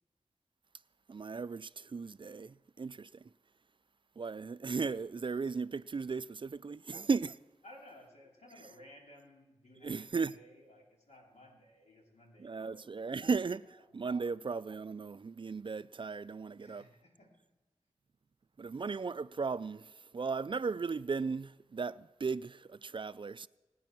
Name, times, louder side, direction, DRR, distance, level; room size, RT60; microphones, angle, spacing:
voice 1, 1.1-3.1 4.2-7.4 9.8-10.3 12.4-16.8 18.6-23.5, right 4 dB, 45° right, 0.4 m, -36 dB
voice 2, 7.6-13.3 13.6-13.9 16.6-17.5, left 1 dB, 70° left, 3.5 m, -58 dB
19.0 x 9.3 x 6.1 m
cardioid pair, 45°, 12 cm